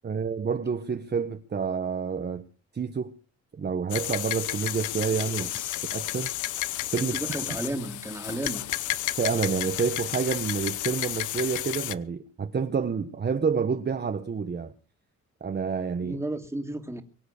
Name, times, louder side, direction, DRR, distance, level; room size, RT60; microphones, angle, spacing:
voice 1, 0.0-2.5 2.7-3.1 3.5-5.5 5.9-6.3 6.9-7.2 9.2-14.7 15.4-16.2, right 6 dB, 35° right, 1.4 m, -28 dB
sound 1, 3.9-11.9, left 14 dB, 80° left, 0.9 m, -32 dB
voice 2, 5.4-5.8 7.0-8.6 16.0-17.0, right 1 dB, 10° right, 2.6 m, -34 dB
23.5 x 8.1 x 6.7 m
cardioid pair, 90°, 30 cm